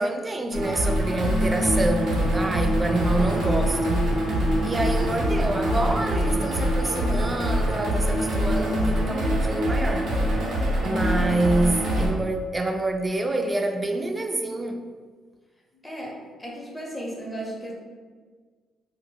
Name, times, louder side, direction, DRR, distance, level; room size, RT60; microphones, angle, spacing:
voice 1, 0.0-4.1 4.6-10.1 10.8-14.9, right 2 dB, 20° right, 5 dB, 0.3 m, -27 dB
sound 1, 0.5-12.1, equal, 70° right, 0.7 m, -24 dB
sound 2, 2.0-8.3, left 2 dB, 65° left, 0.5 m, -38 dB
voice 2, 15.7-17.7, right 1 dB, 5° left, -4 dB, 0.8 m, -35 dB
4.4 x 2.0 x 2.2 m, 1.5 s
cardioid pair, 90°, 0 cm